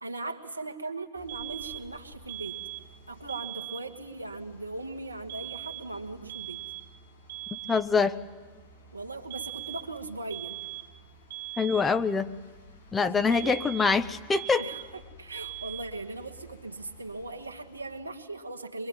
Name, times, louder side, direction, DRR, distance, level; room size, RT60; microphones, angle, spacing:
voice 1, 0.0-2.6 3.1-6.6 8.9-10.6 13.0-13.6 14.5-18.9, right 2 dB, 80° right, 5 dB, 1.6 m, -39 dB
sound 1, 1.1-18.0, equal, 85° left, 7.6 m, -53 dB
sound 2, 1.3-1.9 2.3-3.0 3.3-3.9 5.3-6.0 6.3-7.0 7.3-8.0 9.3-10.0 10.3-11.0 11.3-12.0 13.3-14.0 14.3-15.0 15.3-16.0, right 17 dB, 55° right, 0.8 m, -40 dB
voice 2, 7.7-8.2 11.6-12.3 12.9-14.6, left 5 dB, 15° left, 11 dB, 0.8 m, -24 dB
24.0 x 23.0 x 9.3 m, 1.4 s
figure-of-eight pair, 90°, 0 cm